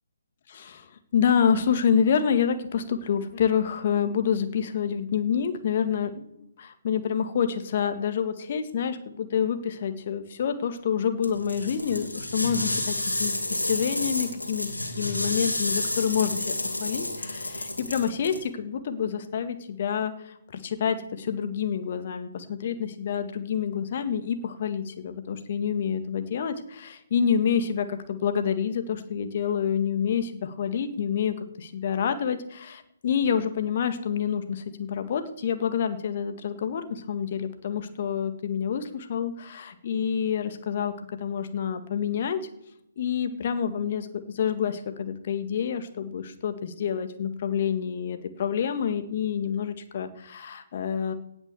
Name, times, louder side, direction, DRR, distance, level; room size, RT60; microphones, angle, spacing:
voice 1, 0.5-6.3 6.6-42.4 43.0-51.1, left 7 dB, 40° left, 8 dB, 1.9 m, -28 dB
sound 1, 11.2-18.4, left 1 dB, 85° left, 3.1 m, -30 dB
18.0 x 6.3 x 7.0 m, 0.88 s
figure-of-eight pair, 140°, 0 cm